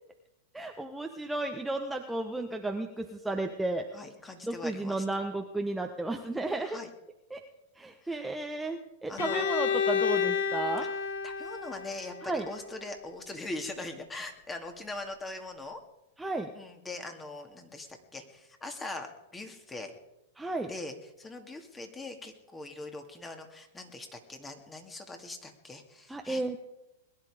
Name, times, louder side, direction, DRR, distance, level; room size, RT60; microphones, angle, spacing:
voice 1, 0.5-3.9 4.4-6.8 7.3-7.4 7.8-10.9 12.2-12.4 16.2-16.5 20.4-20.7 26.1-26.6, right 2 dB, 5° right, 3 dB, 1.1 m, -33 dB
voice 2, 3.9-5.0 6.7-6.9 8.0-8.2 9.1-9.5 11.2-15.8 16.5-19.9 20.7-26.6, left 2 dB, 15° left, 5 dB, 2.4 m, -41 dB
Bowed string instrument, 9.2-13.0, left 7 dB, 70° left, 1.4 m, -31 dB
21.0 x 10.5 x 5.0 m, 0.92 s
hypercardioid pair, 110°, 0 cm